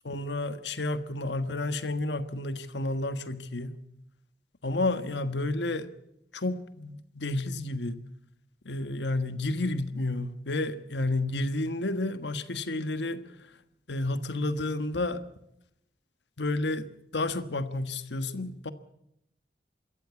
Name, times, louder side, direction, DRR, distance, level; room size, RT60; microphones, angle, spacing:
voice 1, 0.0-3.8 4.6-5.9 6.3-8.0 8.6-13.2 13.9-15.2 16.4-18.7, left 2 dB, 90° left, 1.4 m, -31 dB
25.5 x 14.0 x 8.3 m
head